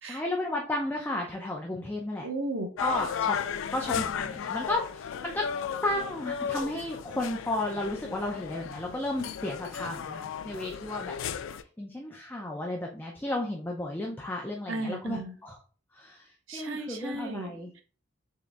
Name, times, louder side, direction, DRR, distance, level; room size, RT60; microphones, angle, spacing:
voice 1, 0.0-2.3 2.8-3.4 3.7-5.4 5.8-11.2 11.8-15.6 16.0-16.2 16.5-17.7, left 1 dB, 10° left, 0 dB, 0.4 m, -33 dB
voice 2, 2.2-2.7 14.7-15.4 16.5-17.8, right 2 dB, 75° right, 5 dB, 0.7 m, -35 dB
sound 1, 2.8-11.6, left 8 dB, 75° left, 0.3 m, -35 dB
3.8 x 3.0 x 3.4 m, 0.40 s
head